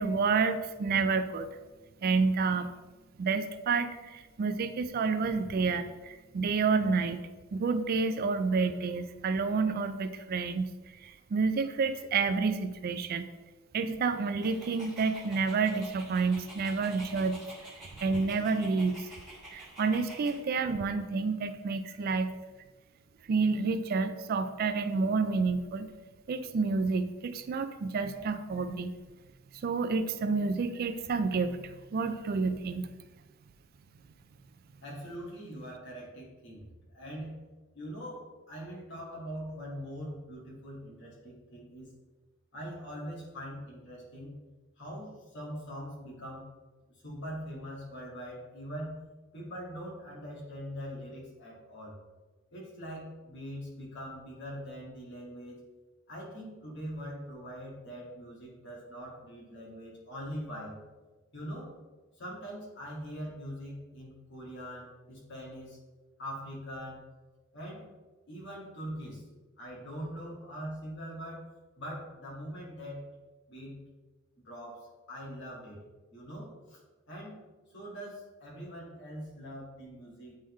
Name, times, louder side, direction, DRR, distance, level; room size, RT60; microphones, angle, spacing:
voice 1, 0.0-1.5 2.0-2.7 3.2-7.2 7.5-10.7 11.0-13.3 13.7-17.4 17.8-19.1 19.5-22.3 23.3-25.9 26.3-28.9 29.6-32.9, right 4 dB, 45° right, 10 dB, 0.3 m, -29 dB
Dog, 14.4-20.4, right 1 dB, ahead, 1.7 m, -49 dB
voice 2, 34.8-36.7 36.9-37.4 37.7-41.9 42.5-44.4 44.8-46.5 47.0-49.0 49.3-52.0 52.5-55.6 56.1-60.8 61.3-61.7 62.2-65.8 66.2-67.0 67.5-67.9 68.3-69.2 69.6-71.4 71.8-73.1 73.5-73.8 74.4-75.8 76.1-76.8 77.1-77.4 77.7-80.4, equal, 60° left, -4 dB, 1.9 m, -42 dB
8.5 x 3.7 x 3.1 m, 1.2 s
head